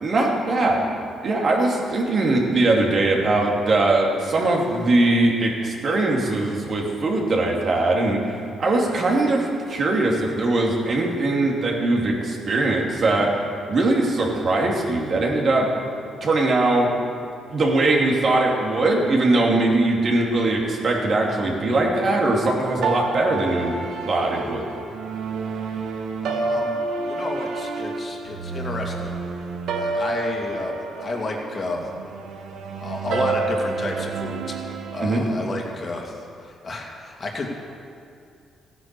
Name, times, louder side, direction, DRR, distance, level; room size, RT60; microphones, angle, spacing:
voice 1, 0.0-0.8 1.2-8.2 8.6-13.3 13.7-15.7 16.2-16.9 17.5-23.7 24.0-24.6 35.0-35.2, right 2 dB, 50° right, -1 dB, 2.8 m, -21 dB
sound 1, 22.8-35.0, right 3 dB, 75° right, 1.3 m, -29 dB
voice 2, 26.2-26.8 27.0-29.1 29.7-30.7 31.0-31.9 32.8-37.5, left 2 dB, 40° left, 0 dB, 2.4 m, -31 dB
15.0 x 9.8 x 6.9 m, 2.4 s
cardioid pair, 90°, 0 cm